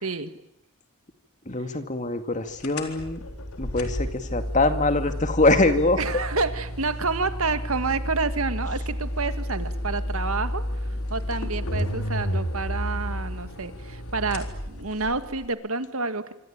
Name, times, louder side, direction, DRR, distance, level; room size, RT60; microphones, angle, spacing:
voice 1, 0.0-0.3 6.0-10.6 11.1-16.2, right 3 dB, 70° right, 10 dB, 2.0 m, -29 dB
voice 2, 1.5-3.2 3.6-6.0, left 2 dB, 35° left, 8 dB, 2.2 m, -23 dB
sound 1, 2.6-15.5, equal, 85° left, 3.9 m, -31 dB
26.5 x 25.5 x 9.0 m, 0.77 s
head